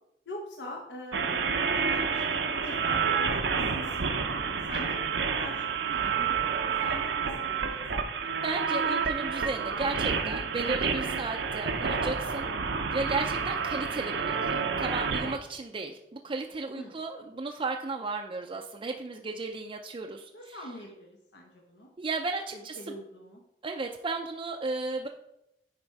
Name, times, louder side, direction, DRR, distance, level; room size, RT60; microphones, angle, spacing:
voice 1, 0.3-2.4 2.6-4.4 4.7-8.1 14.5-14.6 16.7-17.0 20.3-21.9 22.5-23.4, left 1 dB, 80° left, 0 dB, 1.1 m, -43 dB
sound 1, 1.1-15.4, right 5 dB, 80° right, 0.7 m, -29 dB
voice 2, 8.4-12.5 12.9-20.6 22.0-22.8 23.6-25.1, right 3 dB, 30° right, 2 dB, 0.4 m, -34 dB
9.6 x 4.3 x 4.6 m, 0.86 s
head